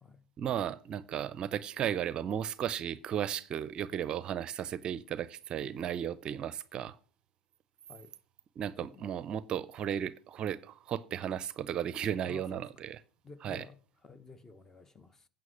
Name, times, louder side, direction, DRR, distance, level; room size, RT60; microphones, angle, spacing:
voice 1, 0.4-7.0 8.6-13.0 13.4-13.6, right 9 dB, 40° right, 0.5 m, -35 dB
voice 2, 12.2-12.6 13.2-13.8 14.0-15.3, left 3 dB, 15° left, 0.9 m, -51 dB
9.4 x 5.7 x 7.6 m
hypercardioid pair, 80°, 2 cm